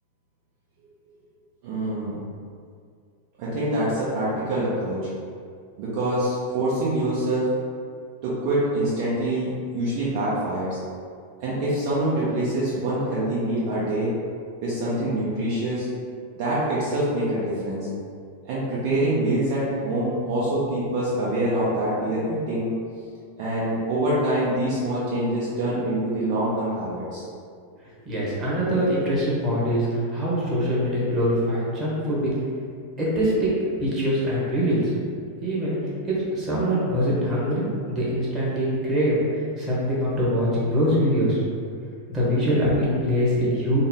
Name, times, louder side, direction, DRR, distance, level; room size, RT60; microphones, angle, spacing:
voice 1, 1.6-2.2 3.4-5.1 5.8-7.5 8.2-10.8 11.4-14.1 14.6-15.9 16.3-17.9 18.4-22.7 23.4-27.2, right 1 dB, 50° right, -8 dB, 0.7 m, -25 dB
voice 2, 28.0-32.3 33.0-33.5 33.8-34.9 35.4-35.8 36.0-39.2 39.6-41.4 42.1-43.8, equal, 25° right, -7 dB, 1.2 m, -23 dB
3.6 x 2.0 x 3.8 m, 2.2 s
figure-of-eight pair, 90°, 0 cm